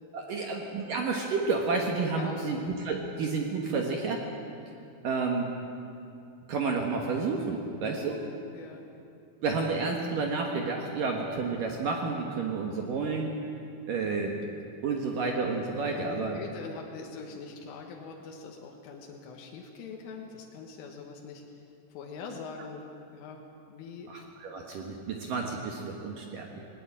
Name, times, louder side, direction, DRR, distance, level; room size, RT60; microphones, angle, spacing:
voice 1, 0.1-4.2 5.0-5.5 6.5-8.2 9.4-13.4 13.9-14.4 14.8-16.4 24.1-26.6, right 4 dB, 65° right, 1 dB, 2.3 m, -30 dB
voice 2, 2.2-2.6 8.5-8.8 15.9-21.4 21.9-22.8 23.1-24.1, left 5 dB, 90° left, 1 dB, 4.0 m, -43 dB
19.5 x 19.0 x 8.9 m, 2.7 s
omnidirectional pair, 5.6 m